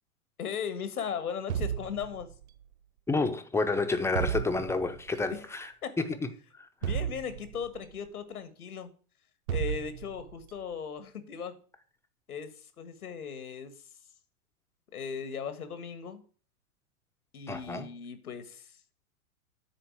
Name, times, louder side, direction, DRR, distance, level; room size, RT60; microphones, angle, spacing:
voice 1, 0.4-2.3 5.3-5.5 5.8-6.0 6.8-8.9 9.5-11.6 12.3-13.7 14.9-16.2 17.3-18.7, left 7 dB, 85° left, 1.5 m, -37 dB
sound 1, 1.5-2.6 4.1-5.1 6.8-7.9 9.5-10.5, right 9 dB, 70° right, 0.8 m, -34 dB
voice 2, 3.1-5.7 6.0-6.3 17.5-17.9, left 3 dB, 5° left, 0.7 m, -29 dB
9.9 x 4.3 x 6.9 m
hypercardioid pair, 110°, 44 cm